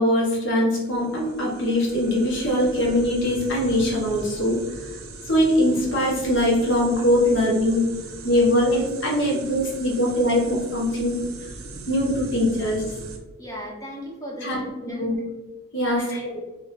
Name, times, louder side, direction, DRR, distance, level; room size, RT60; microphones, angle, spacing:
voice 1, 0.0-5.0 5.3-7.8 8.2-11.1 11.9-12.8 14.4-14.6 15.0-15.1 15.7-16.4, left 1 dB, 55° left, -3 dB, 1.2 m, -22 dB
sound 1, 0.8-13.2, right 3 dB, 75° right, 0.6 m, -39 dB
voice 2, 13.4-15.1 15.9-16.4, equal, 15° left, -1 dB, 0.7 m, -37 dB
4.8 x 2.8 x 2.6 m, 1.2 s
head